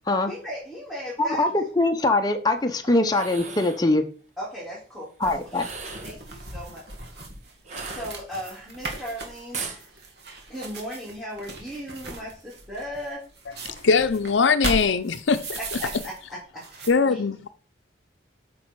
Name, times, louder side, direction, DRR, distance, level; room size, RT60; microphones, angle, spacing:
voice 1, 0.3-1.7 2.8-3.0 4.4-5.6 6.0-7.2 7.8-10.0 10.5-13.2 15.8-15.9 16.3-17.2, equal, ahead, 3.4 m, -37 dB
voice 2, 1.2-4.0 5.2-5.7, left 2 dB, 20° left, 0.8 m, -22 dB
sound 1, 3.0-3.9 5.5-6.2 7.6-8.5 9.5-9.8, right 4 dB, 40° right, 1.5 m, -37 dB
sound 2, 5.2-16.2 16.6-16.9, right 2 dB, 60° right, 2.0 m, -37 dB
voice 3, 13.6-15.6 16.9-17.5, left 5 dB, 80° left, 0.6 m, -21 dB
8.7 x 6.1 x 4.8 m
head